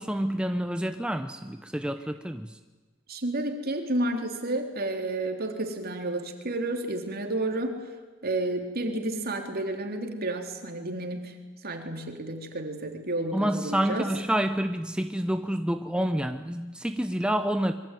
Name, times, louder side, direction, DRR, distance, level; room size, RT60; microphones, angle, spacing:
voice 1, 0.0-2.6 13.3-17.7, equal, 5° right, 8 dB, 0.8 m, -28 dB
voice 2, 3.1-7.9 8.2-11.4 11.6-14.1, right 1 dB, 50° right, 4 dB, 3.8 m, -31 dB
26.5 x 23.5 x 9.4 m, 1.2 s
head